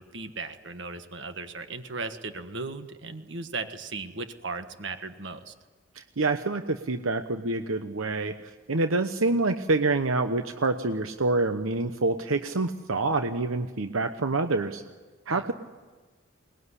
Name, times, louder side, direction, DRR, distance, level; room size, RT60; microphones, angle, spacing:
voice 1, 0.0-5.5 15.3-15.5, right 3 dB, 65° right, 8 dB, 1.5 m, -37 dB
voice 2, 6.0-14.8 15.3-15.5, right 3 dB, 90° right, 8 dB, 1.0 m, -27 dB
22.0 x 20.0 x 9.9 m, 1.3 s
head